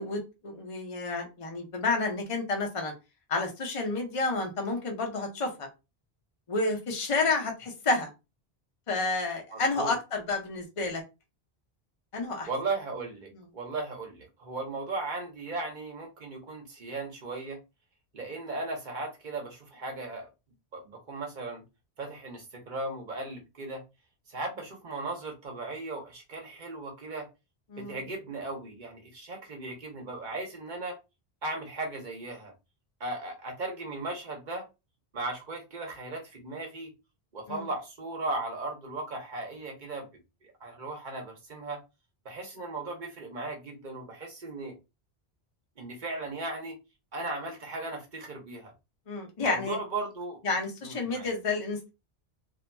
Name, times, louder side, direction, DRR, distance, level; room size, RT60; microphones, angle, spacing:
voice 1, 0.0-2.9 3.3-5.7 6.5-8.1 8.9-11.0 12.1-12.5 27.7-28.0 37.5-37.6 49.1-49.8 50.4-51.9, left 3 dB, 35° left, 0.7 m, -30 dB
voice 2, 9.5-9.9 12.5-17.6 18.1-20.3 20.7-21.6 22.0-23.8 24.3-27.3 27.8-31.0 31.4-32.5 33.0-34.7 35.1-36.9 37.3-40.1 40.4-41.8 42.2-44.7 45.8-46.8 47.1-48.7 49.4-50.4 50.8-51.3, right 2 dB, 50° right, 1.0 m, -37 dB
2.7 x 2.7 x 2.2 m
omnidirectional pair, 1.1 m